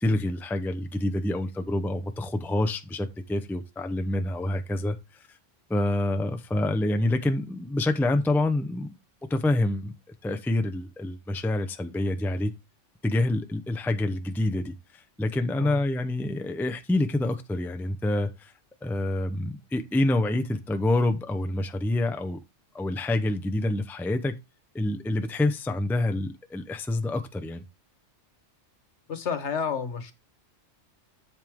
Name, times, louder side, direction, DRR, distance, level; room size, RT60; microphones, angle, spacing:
voice 1, 0.0-5.0 5.7-8.9 9.3-9.9 10.2-12.5 13.0-14.7 15.2-18.5 18.8-22.4 22.7-24.3 24.7-27.6, left 1 dB, ahead, 0.6 m, -27 dB
voice 2, 29.1-30.1, left 6 dB, 70° left, 1.5 m, -30 dB
7.8 x 7.4 x 3.6 m
omnidirectional pair, 1.2 m